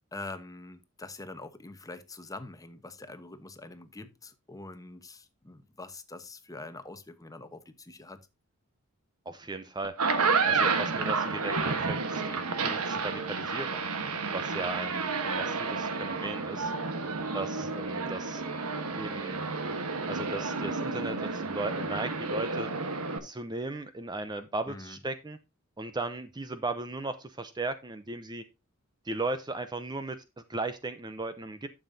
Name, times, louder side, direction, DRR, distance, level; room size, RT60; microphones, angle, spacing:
voice 1, 0.1-8.2 14.5-14.9 17.3-17.7 24.7-25.0, left 2 dB, 15° left, 1.0 m, -44 dB
voice 2, 9.3-9.9 10.5-13.8 14.3-16.7 17.3-18.4 18.9-19.4 20.1-22.7 23.2-25.4 25.8-28.4 29.1-30.2 30.5-31.7, right 2 dB, 20° right, 0.6 m, -36 dB
sound 1, 9.8-23.2, right 4 dB, 85° right, 1.3 m, -31 dB
11.0 x 7.1 x 2.7 m
head